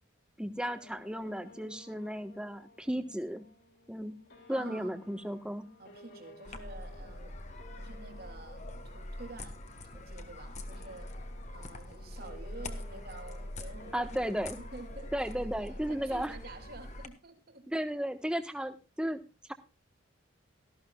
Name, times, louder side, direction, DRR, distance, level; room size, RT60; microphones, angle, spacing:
voice 1, 0.4-3.4 3.9-4.1 4.5-5.7 13.9-14.6 15.1-16.3 17.7-19.2, equal, 5° right, 1.2 m, -34 dB
sound 1, 0.7-17.0, left 1 dB, 55° left, 3.8 m, -57 dB
voice 2, 4.5-5.0 5.8-7.4 7.8-9.6 9.9-11.1 11.5-14.3 14.6-15.1 15.6-17.7, right 2 dB, 50° right, 3.0 m, -49 dB
sound 2, 6.4-17.1, left 1 dB, 35° left, 1.4 m, -44 dB
18.0 x 14.0 x 2.3 m
head